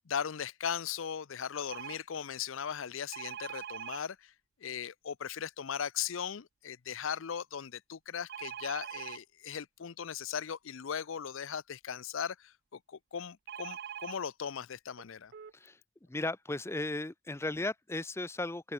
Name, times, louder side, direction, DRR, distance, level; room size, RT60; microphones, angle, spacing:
voice 1, 0.1-4.3 4.6-15.3, left 7 dB, 70° left, 0.5 m, -38 dB
sound 1, 1.7-2.0 3.1-4.0 8.3-9.2 13.5-14.2 15.0-15.1 15.3-15.5, right 9 dB, 50° right, 0.4 m, -42 dB
voice 2, 16.1-18.7, left 2 dB, 10° left, 0.5 m, -36 dB
open air
head